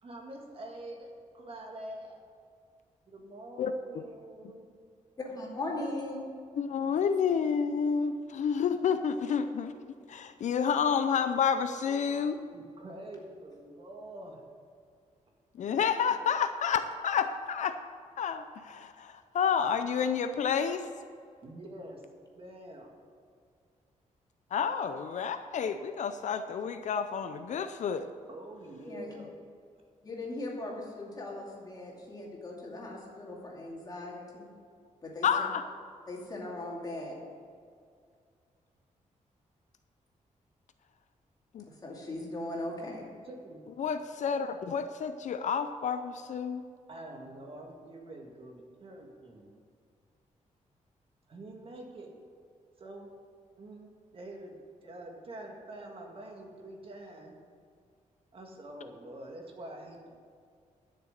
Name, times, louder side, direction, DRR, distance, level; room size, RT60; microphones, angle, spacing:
voice 1, 0.0-2.2 3.1-4.7 12.5-14.4 21.4-22.0 22.3-22.9 28.3-29.3 43.2-43.7 46.9-49.5 51.3-52.1 52.8-53.1 53.6-57.4 58.3-60.2, right 1 dB, 45° right, 1 dB, 1.8 m, -46 dB
voice 2, 3.6-4.0 6.6-9.7 10.1-12.4 15.6-17.8 18.2-20.9 24.5-28.0 35.2-35.6 41.5-41.7 43.8-46.6, left 7 dB, 65° left, 9 dB, 0.5 m, -30 dB
voice 3, 5.2-6.3 28.9-29.1 30.0-34.5 35.0-35.5 36.1-37.2 41.7-43.0, left 2 dB, 30° left, -2 dB, 2.5 m, -39 dB
12.0 x 6.8 x 8.0 m, 2.2 s
wide cardioid pair, 170°, 13 cm